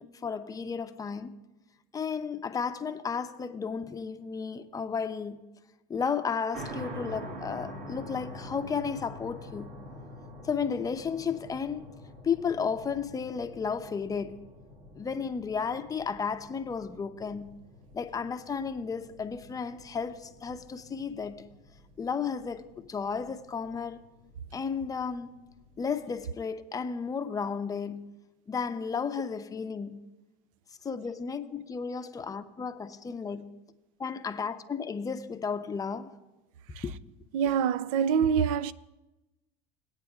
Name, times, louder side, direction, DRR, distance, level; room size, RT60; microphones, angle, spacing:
voice 1, 0.0-1.4 1.9-5.4 5.9-9.7 10.4-11.9 12.2-14.5 15.0-17.6 17.9-21.5 22.0-24.0 24.5-25.4 25.8-28.1 28.5-30.1 30.8-33.6 34.0-36.1 36.8-36.9, left 6 dB, 20° left, 0.6 m, -33 dB
sound 1, 6.5-26.3, equal, 50° right, 1.9 m, -47 dB
voice 2, 37.3-38.7, right 7 dB, 80° right, 0.4 m, -26 dB
19.0 x 8.8 x 2.4 m
supercardioid pair, 115°, 17 cm